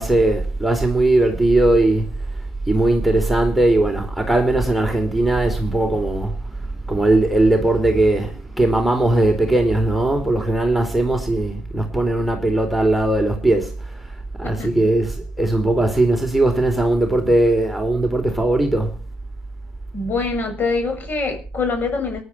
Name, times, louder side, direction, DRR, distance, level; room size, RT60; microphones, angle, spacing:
voice 1, 0.0-2.1 2.7-14.0 14.4-18.9, right 2 dB, ahead, 4.1 m, -19 dB
voice 2, 19.9-22.2, left 4 dB, 40° left, 7.0 m, -24 dB
19.5 x 11.0 x 5.8 m
hypercardioid pair, 70°, 5 cm